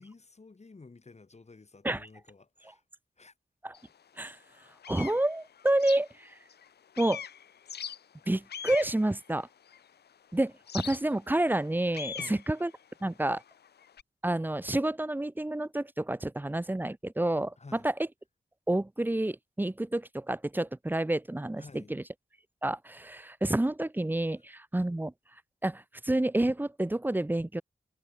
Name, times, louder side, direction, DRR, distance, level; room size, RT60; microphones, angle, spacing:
voice 1, 0.0-2.8 3.2-3.3 12.1-12.4 17.6-17.9 21.6-22.0, left 3 dB, 40° left, 3.6 m, -52 dB
sound 1, 3.7-3.9 4.4-6.7 6.9-10.1 10.7-14.0, left 8 dB, 75° left, 0.6 m, -42 dB
voice 2, 4.9-6.4 7.0-7.2 8.3-9.5 10.3-12.7 13.0-13.4 14.2-17.5 17.8-17.9 18.7-22.0 22.6-25.1 25.6-27.6, right 1 dB, 10° right, 0.6 m, -29 dB
wide cardioid pair, 90°, 17 cm